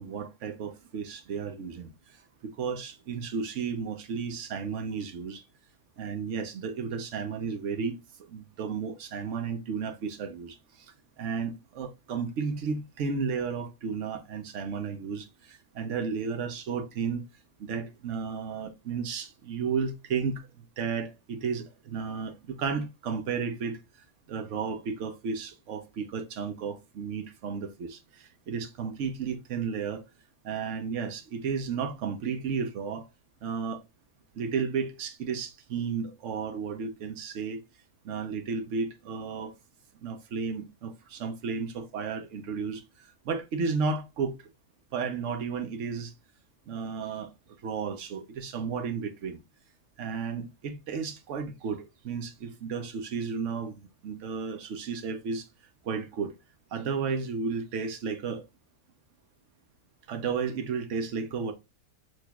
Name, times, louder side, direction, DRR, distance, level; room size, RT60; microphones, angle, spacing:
voice 1, 0.0-2.2 2.4-5.4 6.0-8.0 8.3-17.2 17.6-20.5 20.8-23.8 24.3-30.0 30.4-33.1 33.4-33.8 34.3-37.6 38.0-39.5 40.0-44.4 44.9-46.1 46.7-47.3 47.6-49.4 50.0-55.5 55.8-56.3 56.7-58.4 60.1-61.5, right 5 dB, 55° right, 1.1 m, -33 dB
6.4 x 3.1 x 2.4 m
omnidirectional pair, 1.6 m